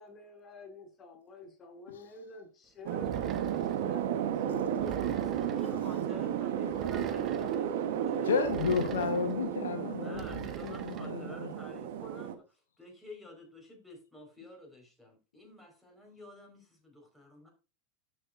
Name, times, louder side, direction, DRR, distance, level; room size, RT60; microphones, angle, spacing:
voice 1, 0.0-3.3 3.8-5.8 6.7-6.8, left 3 dB, 30° left, 2.7 m, -48 dB
sound 1, 2.9-12.4, right 9 dB, 65° right, 1.1 m, -33 dB
sound 2, 3.0-3.9 4.8-5.7 6.7-7.6 8.5-9.3 10.1-11.1, right 8 dB, 35° right, 1.1 m, -44 dB
voice 2, 4.8-8.5 9.9-17.5, left 2 dB, ahead, 4.8 m, -50 dB
voice 3, 8.2-11.5, left 6 dB, 80° left, 1.0 m, -32 dB
14.0 x 6.4 x 2.6 m
hypercardioid pair, 90°, 0 cm